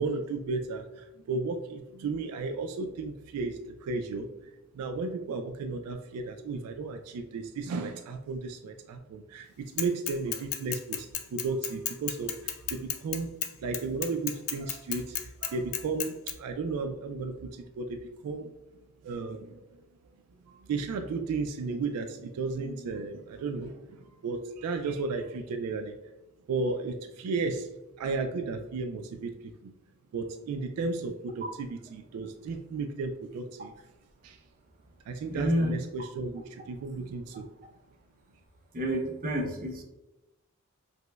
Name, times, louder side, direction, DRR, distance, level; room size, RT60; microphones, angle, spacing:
voice 1, 0.0-4.3 4.7-13.3 13.6-15.2 15.4-18.5 19.0-19.6 20.6-25.9 26.5-27.7 28.0-29.7 30.1-33.7 34.2-34.4 35.1-37.5, right 4 dB, 85° right, 10 dB, 0.3 m, -34 dB
Bicycle / Mechanisms, 9.8-16.3, left 10 dB, 65° left, 0.4 m, -33 dB
voice 2, 35.3-35.7 38.7-39.8, equal, 40° right, 1 dB, 0.6 m, -29 dB
4.9 x 2.0 x 2.2 m, 0.98 s
head